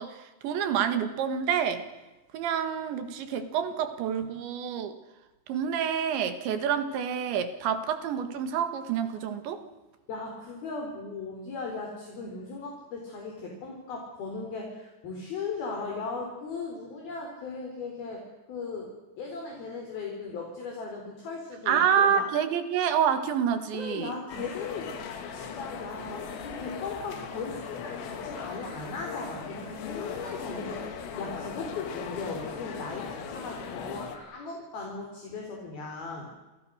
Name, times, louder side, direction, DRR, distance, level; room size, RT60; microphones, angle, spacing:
voice 1, 0.0-1.9 2.3-5.0 5.5-9.6 21.7-24.1, right 8 dB, 70° right, 9 dB, 4.1 m, -28 dB
voice 2, 10.1-18.2 18.5-18.9 19.2-22.2 23.7-24.9 25.3-36.3, left 4 dB, 50° left, 0 dB, 5.9 m, -37 dB
sound 1, 24.3-34.2, left 6 dB, 90° left, 5.0 m, -38 dB
28.5 x 28.5 x 6.6 m, 1.1 s
omnidirectional pair, 5.7 m